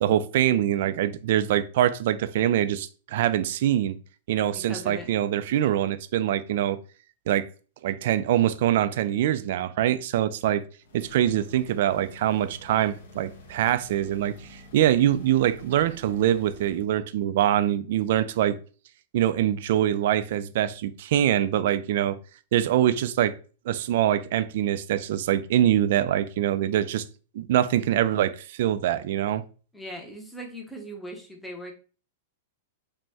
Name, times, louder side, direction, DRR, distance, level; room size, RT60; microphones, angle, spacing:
voice 1, 0.0-4.0 4.3-6.8 7.3-7.5 7.8-10.6 10.9-18.6 19.1-22.2 22.5-23.3 23.7-27.0 27.3-29.4, right 11 dB, 50° right, 0.3 m, -24 dB
voice 2, 4.5-5.1 29.7-31.7, equal, ahead, 0.6 m, -39 dB
sound 1, 10.8-16.9, left 2 dB, 80° left, 1.4 m, -49 dB
5.1 x 2.1 x 3.5 m
supercardioid pair, 170°, 0 cm